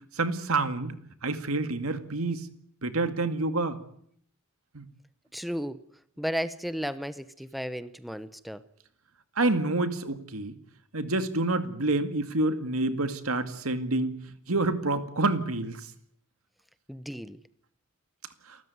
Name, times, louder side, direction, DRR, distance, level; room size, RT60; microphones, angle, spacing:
voice 1, 0.2-1.0 1.2-2.4 2.8-3.8 4.7-4.8 9.4-10.5 10.9-14.2 14.5-15.8, right 2 dB, 85° right, 10 dB, 2.1 m, -27 dB
voice 2, 5.3-5.8 6.2-8.6 16.9-17.4, equal, ahead, 13 dB, 0.9 m, -34 dB
28.5 x 13.5 x 9.5 m, 0.65 s
head